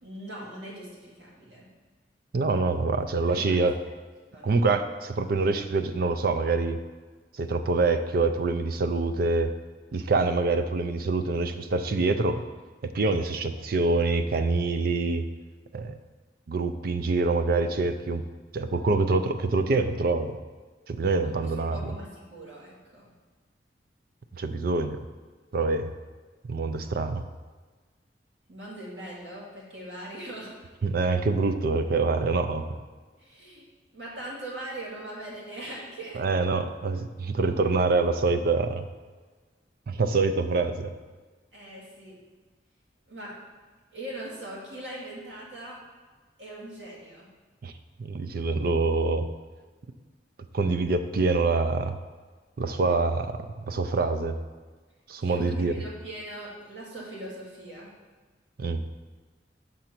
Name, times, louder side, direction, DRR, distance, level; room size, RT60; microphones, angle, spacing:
voice 1, 0.0-1.7 3.3-3.6 4.3-4.6 21.2-23.1 28.5-30.6 33.2-33.6 33.9-36.2 41.5-42.2 43.1-43.3 43.9-45.8 46.4-47.3 55.2-57.9, right 1 dB, 80° right, -5 dB, 2.2 m, -41 dB
voice 2, 2.3-3.7 4.4-6.8 7.3-9.5 9.9-12.4 12.9-15.2 15.7-16.0 16.5-18.2 18.5-20.4 20.9-21.8 24.4-25.0 25.5-25.9 26.5-27.2 30.8-32.7 36.1-38.9 39.9-40.9 47.6-47.7 48.0-49.3 50.5-52.0 52.6-54.3 55.1-55.7 58.6-58.8, right 3 dB, 55° right, 9 dB, 0.5 m, -25 dB
6.9 x 3.8 x 5.9 m, 1.4 s
head